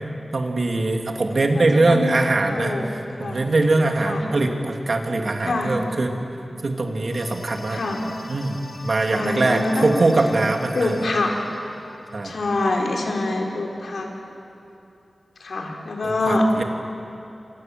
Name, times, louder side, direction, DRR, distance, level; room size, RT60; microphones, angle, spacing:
voice 1, 0.3-6.1 6.6-7.8 8.3-11.1 12.1-12.3 16.0-16.6, right 2 dB, 60° right, 3 dB, 2.7 m, -22 dB
voice 2, 1.4-2.9 3.2-3.4 4.0-4.2 5.4-5.8 7.7-8.0 9.1-9.9 10.7-11.3 12.2-14.1 15.4-16.5, left 2 dB, 85° left, 0 dB, 4.1 m, -25 dB
sound 1, 7.1-13.2, left 2 dB, 55° left, 4.9 m, -42 dB
29.0 x 25.5 x 7.8 m, 2.7 s
wide cardioid pair, 100°, 0 cm